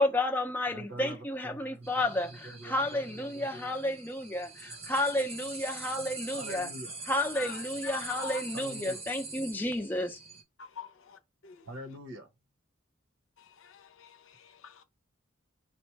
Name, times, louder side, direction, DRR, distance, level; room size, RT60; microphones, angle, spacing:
voice 1, 0.0-6.7 7.1-10.2, left 1 dB, 10° left, 0.5 m, -31 dB
voice 2, 0.7-3.7 6.3-7.0 8.5-9.0 11.7-12.3, right 1 dB, 65° right, 0.9 m, -45 dB
sound 1, 1.8-10.4, right 3 dB, 30° right, 0.7 m, -44 dB
voice 3, 7.3-8.4 10.6-11.2 11.4-11.6 13.6-14.2 14.6-14.7, left 6 dB, 70° left, 0.7 m, -44 dB
4.2 x 2.1 x 4.5 m
head